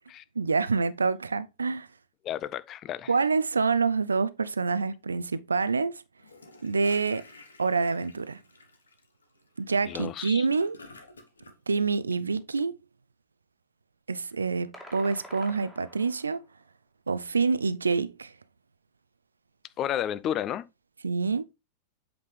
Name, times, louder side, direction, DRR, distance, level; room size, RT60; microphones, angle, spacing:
voice 1, 0.4-1.9 3.1-6.0 6.6-7.2 7.6-8.4 9.6-10.8 11.7-12.8 14.1-16.4 17.1-18.3 21.0-21.4, right 4 dB, 75° right, 0.4 m, -27 dB
voice 2, 2.2-3.1 9.9-10.5 19.8-20.6, left 10 dB, 30° left, 0.4 m, -32 dB
Gurgling / Toilet flush, 6.2-11.6, left 3 dB, 75° left, 1.2 m, -51 dB
sound 1, 14.7-16.4, equal, ahead, 2.1 m, -47 dB
7.9 x 5.1 x 3.2 m
figure-of-eight pair, 90°, 0 cm